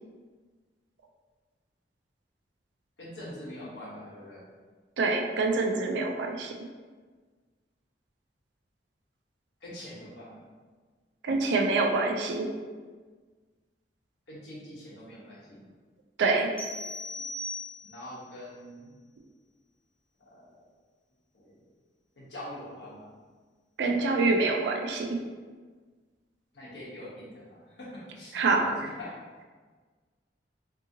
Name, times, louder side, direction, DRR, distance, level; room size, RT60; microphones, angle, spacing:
voice 1, 3.0-4.5 9.6-10.4 14.3-15.7 17.8-18.9 20.2-20.6 21.3-21.6 22.2-23.1 26.5-29.1, left 1 dB, 85° left, -6 dB, 0.9 m, -44 dB
voice 2, 5.0-6.6 11.2-12.5 16.2-16.6 23.8-25.2 28.3-28.9, right 3 dB, 70° right, 3 dB, 0.3 m, -26 dB
sound 1, 16.6-18.1, left 1 dB, 10° left, 0.7 m, -38 dB
2.7 x 2.7 x 2.6 m, 1.5 s
head